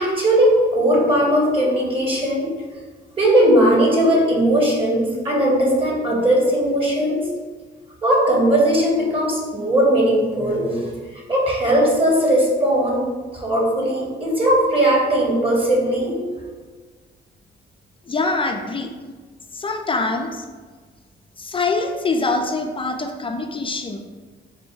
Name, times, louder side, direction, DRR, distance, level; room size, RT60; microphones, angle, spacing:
voice 1, 0.0-2.5 3.2-7.3 8.0-10.9 11.3-13.1 13.3-16.2, right 1 dB, 25° right, -3 dB, 1.4 m, -18 dB
voice 2, 18.0-18.9 19.5-20.4 21.4-24.1, left 3 dB, 25° left, 4 dB, 0.4 m, -24 dB
4.3 x 2.2 x 4.5 m, 1.4 s
cardioid pair, 90°, 20 cm